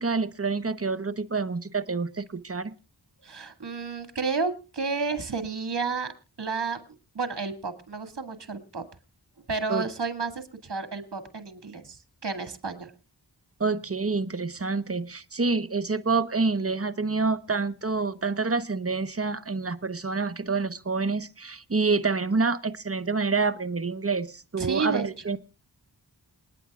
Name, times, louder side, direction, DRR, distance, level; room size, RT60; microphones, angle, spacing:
voice 1, 0.0-2.7 9.7-9.8 13.6-25.4, right 4 dB, 35° right, 11 dB, 1.0 m, -27 dB
voice 2, 3.2-6.1 6.4-6.8 7.1-8.8 9.5-12.9 24.6-25.3, right 4 dB, 70° right, 9 dB, 2.1 m, -31 dB
28.0 x 9.4 x 2.4 m, 0.32 s
wide cardioid pair, 50°, 42 cm